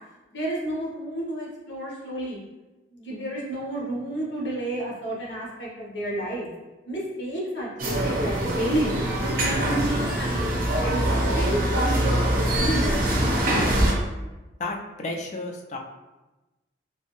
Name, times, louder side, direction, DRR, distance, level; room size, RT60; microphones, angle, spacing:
voice 1, 0.3-2.4 2.9-6.5 6.9-10.5 10.8-12.1 12.5-13.2, right 1 dB, 75° left, -3 dB, 0.9 m, -31 dB
sound 1, 7.8-13.9, right 1 dB, 50° right, 0.7 m, -23 dB
voice 2, 14.6-15.8, left 2 dB, 40° left, 1 dB, 0.4 m, -32 dB
3.2 x 2.7 x 3.0 m, 1.1 s
head